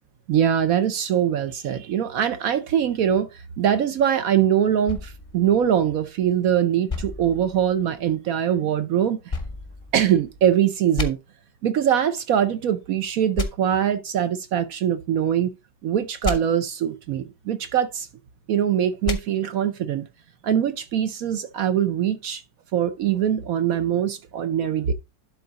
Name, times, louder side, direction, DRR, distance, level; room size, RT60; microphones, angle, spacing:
voice 1, 0.3-9.3 9.9-11.2 11.6-15.5 15.8-18.1 18.5-20.1 20.4-22.4 22.7-24.9, right 9 dB, 65° right, 0.9 m, -22 dB
sound 1, 4.9-6.3 6.9-8.1 9.3-10.4 10.9-11.1 13.3-13.5 16.2-16.4 19.0-19.2, left 4 dB, 30° left, 0.7 m, -31 dB
11.5 x 3.8 x 4.0 m
omnidirectional pair, 2.0 m